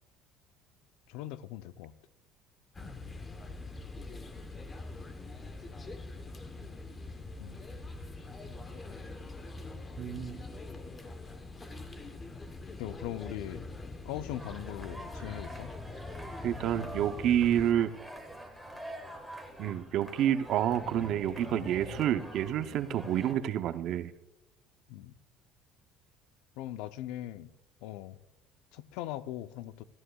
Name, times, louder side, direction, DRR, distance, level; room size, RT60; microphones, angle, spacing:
voice 1, 1.1-1.9 7.4-7.6 12.8-13.7 14.1-15.7 24.9-25.1 26.6-27.5 27.8-28.2 28.7-29.8, left 13 dB, 80° left, 0.5 m, -40 dB
sound 1, 2.7-17.7, left 2 dB, 20° left, 1.0 m, -44 dB
voice 2, 10.0-10.4 16.4-17.9 19.6-24.1, right 10 dB, 55° right, 0.6 m, -29 dB
sound 2, 14.3-23.3, right 1 dB, ahead, 1.5 m, -45 dB
17.5 x 14.0 x 2.3 m
cardioid pair, 135°, 0 cm